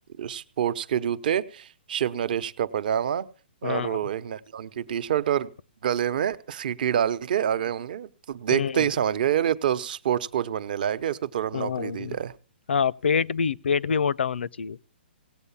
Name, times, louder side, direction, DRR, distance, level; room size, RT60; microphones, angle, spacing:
voice 1, 0.2-3.3 3.6-5.5 5.8-12.3, right 9 dB, 50° right, 0.9 m, -27 dB
voice 2, 3.6-4.0 8.5-8.9 11.5-12.2 12.7-14.8, left 6 dB, 85° left, 0.6 m, -26 dB
17.5 x 8.2 x 7.1 m
hypercardioid pair, 160°, 6 cm